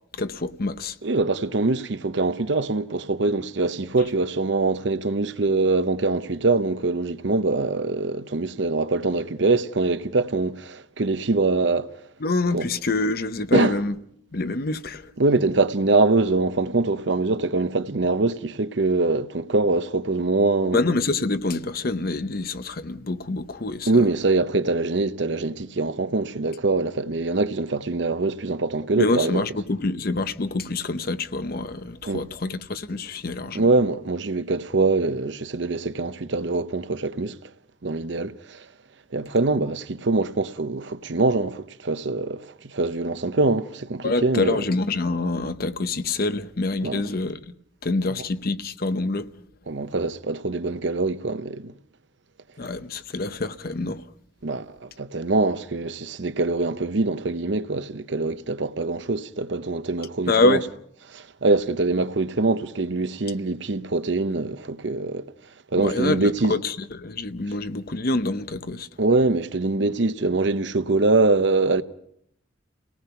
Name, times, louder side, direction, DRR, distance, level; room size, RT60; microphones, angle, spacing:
voice 1, 0.1-0.9 12.2-13.9 14.3-15.1 20.7-24.0 29.0-33.7 44.0-47.5 47.8-49.3 52.6-54.0 60.3-60.7 65.8-68.9, left 2 dB, 50° left, 0.8 m, -26 dB
voice 2, 1.0-11.9 12.5-12.7 13.5-13.8 15.2-20.8 23.9-29.4 32.1-32.2 33.5-37.4 37.8-38.6 39.1-44.6 46.8-47.0 49.7-51.7 54.4-60.6 61.1-65.3 65.7-66.6 69.0-71.8, right 3 dB, 65° right, 0.8 m, -23 dB
29.5 x 18.5 x 5.8 m
head